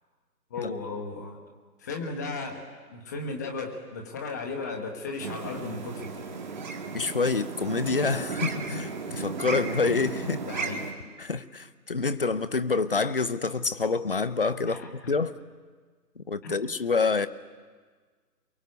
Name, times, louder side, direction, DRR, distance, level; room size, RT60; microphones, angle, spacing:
voice 1, 0.5-1.4 1.8-2.6 2.9-6.3 10.5-10.8 14.7-15.1 16.4-16.5, left 3 dB, 10° left, 3 dB, 1.3 m, -35 dB
sound 1, 5.2-10.9, right 4 dB, 30° right, 2.0 m, -35 dB
voice 2, 6.9-10.4 11.2-15.3 16.2-17.3, left 4 dB, 35° left, 14 dB, 0.8 m, -27 dB
29.5 x 23.0 x 8.2 m, 1.5 s
figure-of-eight pair, 155°, 49 cm